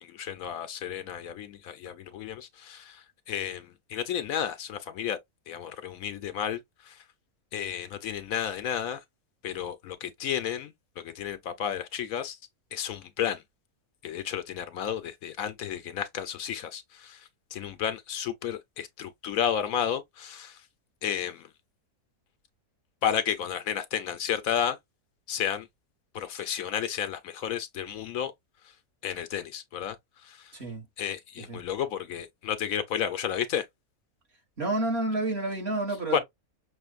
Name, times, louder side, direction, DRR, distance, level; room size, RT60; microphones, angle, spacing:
voice 1, 0.0-5.2 5.5-7.0 7.5-9.0 9.4-12.4 12.7-13.4 14.0-20.6 21.0-21.5 23.0-24.8 25.3-25.7 26.1-28.3 29.0-30.0 30.2-30.5 31.0-33.6 36.1-36.2, left 9 dB, 75° left, 1.0 m, -32 dB
voice 2, 30.5-30.9 31.4-31.6 34.6-36.2, right 2 dB, 45° right, 1.9 m, -29 dB
6.1 x 2.5 x 2.4 m
omnidirectional pair, 1.6 m